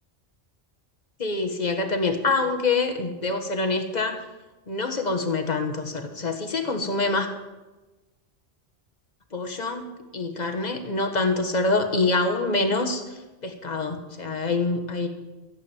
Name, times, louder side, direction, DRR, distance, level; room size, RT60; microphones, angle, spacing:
voice 1, 1.2-4.2 4.7-7.3 9.3-9.9 10.1-13.0 13.4-15.1, left 3 dB, 40° left, 5 dB, 1.7 m, -25 dB
14.0 x 8.0 x 9.1 m, 1.1 s
omnidirectional pair, 1.1 m